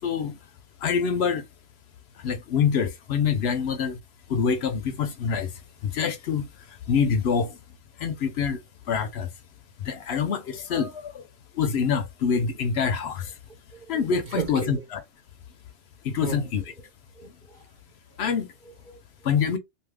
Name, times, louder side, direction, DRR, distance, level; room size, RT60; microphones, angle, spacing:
voice 1, 0.0-0.4 0.8-1.5 2.2-4.0 4.3-5.5 5.8-6.5 6.9-7.6 8.0-8.6 8.9-9.3 9.8-11.2 11.5-13.3 13.9-15.0 16.0-16.6 18.2-18.5 19.2-19.6, left 6 dB, 65° left, 0.8 m, -25 dB
voice 2, 13.9-14.8 16.2-16.4 17.2-17.6 18.6-19.3, right 5 dB, 45° right, 0.9 m, -35 dB
2.7 x 2.5 x 3.3 m
omnidirectional pair, 1.2 m